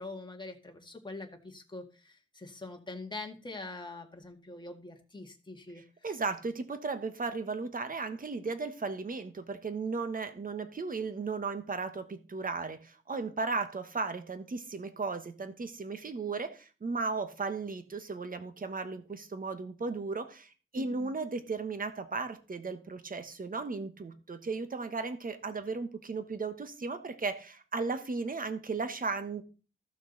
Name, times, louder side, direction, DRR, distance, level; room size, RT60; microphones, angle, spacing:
voice 1, 0.0-5.8 20.8-21.1, left 2 dB, 20° left, 3 dB, 1.9 m, -44 dB
voice 2, 5.8-29.4, right 4 dB, 40° right, 9 dB, 1.2 m, -35 dB
14.5 x 6.2 x 4.0 m, 0.36 s
wide cardioid pair, 90°, 21 cm